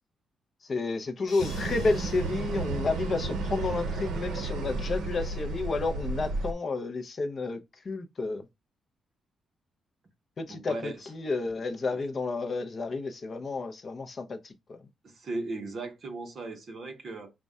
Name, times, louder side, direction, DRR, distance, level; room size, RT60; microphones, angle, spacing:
voice 1, 0.7-7.6 7.8-8.4 10.4-14.8, left 3 dB, 35° left, 0.5 m, -31 dB
sound 1, 1.3-3.6, left 5 dB, 70° left, 0.9 m, -51 dB
sound 2, 1.4-6.5, right 3 dB, 85° right, 0.6 m, -32 dB
voice 2, 10.5-11.0 15.0-17.3, right 2 dB, 40° right, 0.8 m, -37 dB
5.2 x 2.1 x 3.5 m
wide cardioid pair, 170°, 0 cm